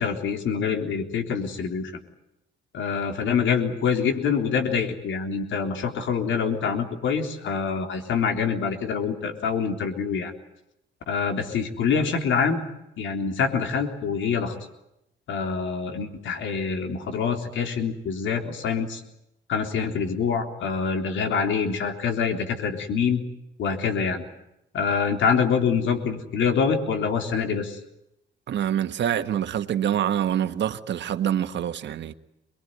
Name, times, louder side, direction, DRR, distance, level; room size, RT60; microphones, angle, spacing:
voice 1, 0.0-2.0 2.7-10.3 11.1-12.6 13.0-14.5 15.3-19.0 19.5-23.2 23.6-24.2 24.7-27.8, left 6 dB, 70° left, 3.6 m, -25 dB
voice 2, 28.5-32.1, right 10 dB, 65° right, 1.5 m, -26 dB
24.0 x 22.0 x 9.4 m
cardioid pair, 90°, 20 cm